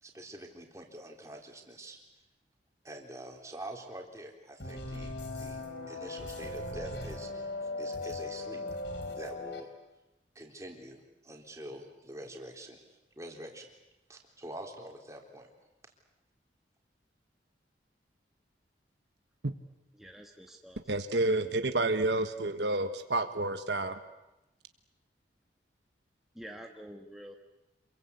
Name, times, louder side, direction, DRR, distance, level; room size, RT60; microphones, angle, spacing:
voice 1, 0.0-2.0 2.8-8.6 9.1-9.7 10.4-12.8 13.2-13.7 14.1-15.5, right 1 dB, 15° right, 1 dB, 3.7 m, -46 dB
sound 1, 4.6-9.6, left 2 dB, 75° left, 3.5 m, -38 dB
voice 2, 20.0-20.8 21.4-21.5 26.3-27.4, equal, ahead, 1 dB, 1.5 m, -47 dB
voice 3, 20.9-24.0, right 2 dB, 70° right, 8 dB, 1.4 m, -29 dB
28.0 x 22.5 x 8.3 m, 0.97 s
head